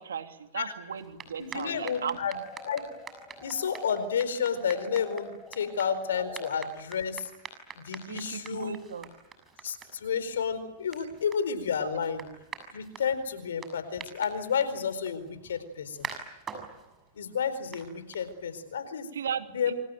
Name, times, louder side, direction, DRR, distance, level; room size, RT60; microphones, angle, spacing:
voice 1, 0.0-2.2 8.0-9.1 19.1-19.7, right 7 dB, 85° right, 6 dB, 2.9 m, -36 dB
sound 1, 0.9-18.7, right 6 dB, 25° right, 7.1 m, -47 dB
voice 2, 1.4-2.4 2.6-2.8 3.4-7.3 7.8-8.8 9.6-12.3 12.7-16.0 17.1-19.1 19.5-19.7, left 7 dB, 80° left, 13 dB, 4.5 m, -31 dB
sound 2, 2.0-4.1 4.4-6.5, left 2 dB, 15° left, 5.2 m, -47 dB
28.0 x 25.0 x 7.9 m, 0.90 s
hypercardioid pair, 115°, 0 cm